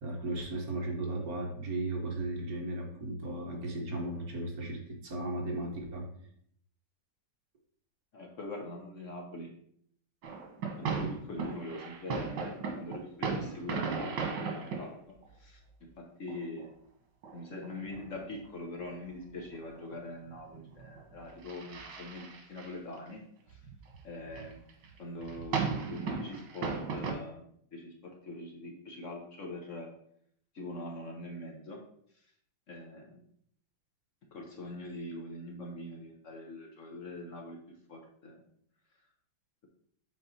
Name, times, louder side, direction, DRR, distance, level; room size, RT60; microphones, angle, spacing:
voice 1, 0.0-6.1, right 1 dB, 60° right, 1 dB, 1.6 m, -36 dB
voice 2, 8.1-9.5 10.8-14.9 15.3-15.6 16.0-16.7 17.3-23.2 23.5-23.6 24.0-24.6 25.0-25.6 25.9-29.9 30.5-31.8 32.7-33.2 34.3-37.6 37.9-38.4, left 1 dB, 50° left, 1 dB, 1.3 m, -43 dB
sound 1, 10.2-14.9 15.2-15.3 16.3-16.7 17.2-18.1 18.4-18.5 18.8-18.9 19.1-19.2 19.4-20.0 20.2-23.1 23.5-24.0 24.3-27.1, right 5 dB, 85° right, 1.8 m, -36 dB
7.6 x 4.3 x 4.2 m, 0.67 s
omnidirectional pair, 1.9 m